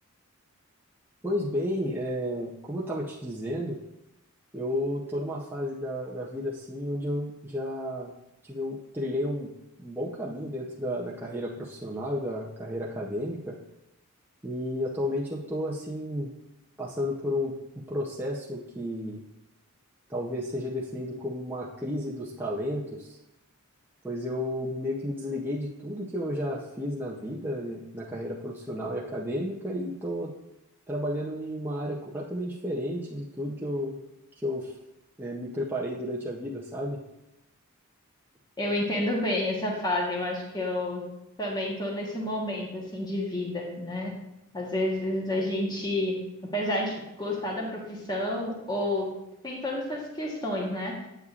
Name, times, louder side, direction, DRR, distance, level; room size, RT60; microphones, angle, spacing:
voice 1, 1.2-3.8 4.5-8.1 8.4-9.5 9.8-13.6 14.4-16.3 16.8-19.2 20.1-23.2 24.0-30.3 30.9-34.0 34.4-34.7 35.2-37.0, equal, 10° right, -5 dB, 0.5 m, -32 dB
voice 2, 38.6-41.0 41.4-44.1 44.5-46.2 46.5-49.1 49.4-50.9, left 1 dB, 20° left, -2 dB, 1.1 m, -30 dB
8.0 x 7.0 x 2.4 m, 0.89 s
head